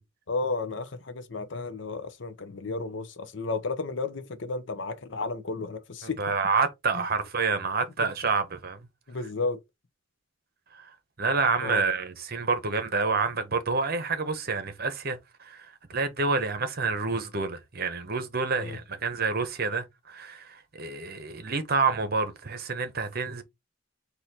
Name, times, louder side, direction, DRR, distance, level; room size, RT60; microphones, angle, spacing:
voice 1, 0.3-6.2 6.9-7.0 9.1-9.6 11.6-11.8 18.6-18.8, left 3 dB, 65° left, 0.7 m, -33 dB
voice 2, 6.0-8.9 10.7-10.9 11.2-23.4, right 4 dB, 50° right, 1.0 m, -28 dB
4.2 x 2.8 x 4.2 m
head